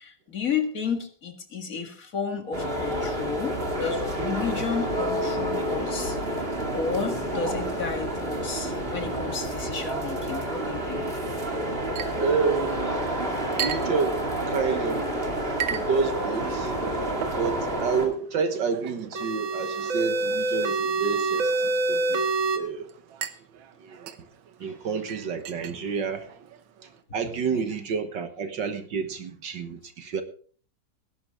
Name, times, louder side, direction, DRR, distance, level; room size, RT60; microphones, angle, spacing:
voice 1, 0.0-6.2 6.7-11.1 24.6-24.7 27.5-27.7, left 5 dB, 45° left, 6 dB, 2.2 m, -32 dB
sound 1, 2.5-18.1, right 1 dB, 30° right, 2.6 m, -29 dB
Chink clink, 11.9-27.0, right 9 dB, 90° right, 1.8 m, -40 dB
voice 2, 12.2-13.0 13.6-15.2 15.7-16.7 17.4-22.2 22.6-22.9 23.8-24.1 24.6-26.3 27.1-30.2, right 5 dB, 70° right, 8 dB, 1.9 m, -29 dB
sound 2, 19.1-22.6, right 3 dB, 45° right, 1.7 m, -26 dB
19.0 x 11.0 x 3.7 m, 0.43 s
omnidirectional pair, 2.1 m